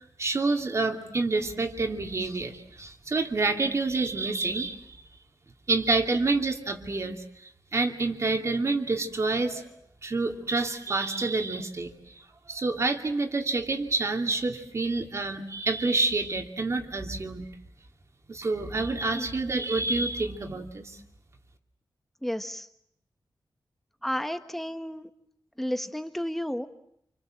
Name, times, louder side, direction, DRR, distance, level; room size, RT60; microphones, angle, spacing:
voice 1, 0.0-5.0 5.7-7.2 7.7-9.7 10.0-11.9 12.5-17.5 18.3-21.0, right 3 dB, 35° right, 4 dB, 2.5 m, -28 dB
voice 2, 22.2-22.7 24.0-25.1 25.6-26.7, equal, 5° left, 9 dB, 1.5 m, -32 dB
28.0 x 26.0 x 7.6 m, 0.74 s
wide cardioid pair, 135°, 8 cm